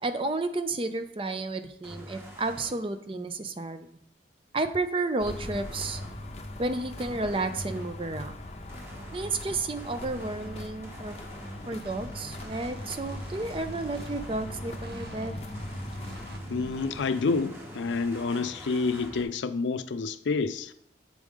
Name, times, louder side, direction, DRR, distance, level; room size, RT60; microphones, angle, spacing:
voice 1, 0.0-4.0 4.5-6.0 6.6-8.3 9.1-11.3 11.7-15.4, right 2 dB, 30° right, 0.5 m, -32 dB
sound 1, 1.8-2.7 5.3-6.2 7.0-7.9 8.7-15.2 15.5-19.2, equal, 15° right, 1.1 m, -43 dB
sound 2, 5.2-16.4, left 1 dB, 35° left, 0.7 m, -41 dB
sound 3, 11.7-17.0, right 2 dB, 60° right, 0.8 m, -50 dB
voice 2, 16.5-20.7, left 4 dB, 90° left, 0.4 m, -28 dB
7.5 x 4.8 x 3.6 m
head